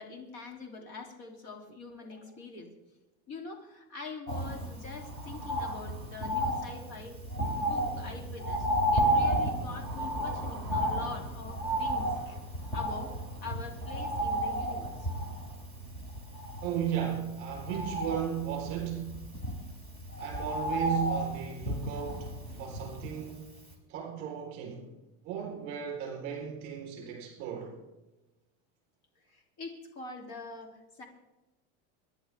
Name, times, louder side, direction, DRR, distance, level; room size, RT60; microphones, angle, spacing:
voice 1, 0.0-2.7 3.3-7.1 7.6-12.4 12.7-13.1 13.4-15.1 29.3-31.1, left 3 dB, 45° left, 3.1 m, -44 dB
Bird, 4.3-23.4 23.7-23.8, right 1 dB, 15° left, 2.9 m, -33 dB
voice 2, 16.6-19.3 20.2-23.5 23.9-24.9 25.2-27.7, right 9 dB, 45° right, 4.2 m, -35 dB
27.5 x 10.5 x 3.6 m
cardioid pair, 180°, 34 cm